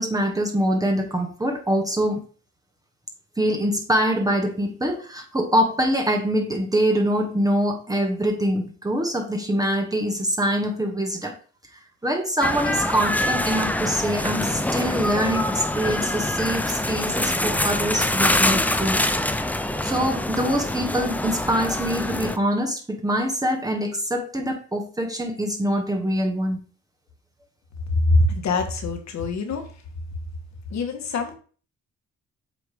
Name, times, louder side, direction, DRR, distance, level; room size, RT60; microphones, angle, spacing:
voice 1, 0.0-2.2 3.4-11.4 11.7-19.0 19.8-26.6, equal, 10° right, 2 dB, 1.3 m, -24 dB
sound 1, 12.4-22.4, left 1 dB, 5° left, 0.6 m, -25 dB
voice 2, 27.9-29.7 30.7-31.4, left 2 dB, 65° left, 5 dB, 1.7 m, -23 dB
7.9 x 3.2 x 5.1 m, 0.39 s
cardioid pair, 90°, 30 cm